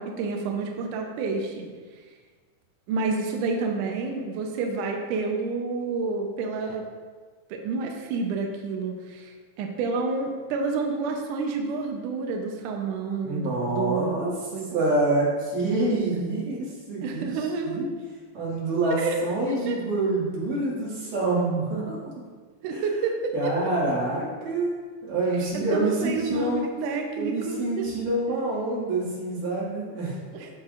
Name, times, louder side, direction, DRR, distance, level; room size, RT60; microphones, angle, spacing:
voice 1, 0.0-1.7 2.9-6.8 7.5-14.8 17.0-17.9 19.0-19.2 19.7-19.8 22.6-23.6 25.5-27.9 30.3-30.5, right 4 dB, 85° right, 2 dB, 1.8 m, -29 dB
voice 2, 13.2-14.3 14.7-17.3 17.6-17.9 18.3-22.0 22.7-22.8 23.3-24.7 25.0-26.7 27.2-30.2, right 2 dB, 60° right, -6 dB, 3.5 m, -26 dB
13.5 x 5.9 x 2.5 m, 1.5 s
omnidirectional pair, 4.7 m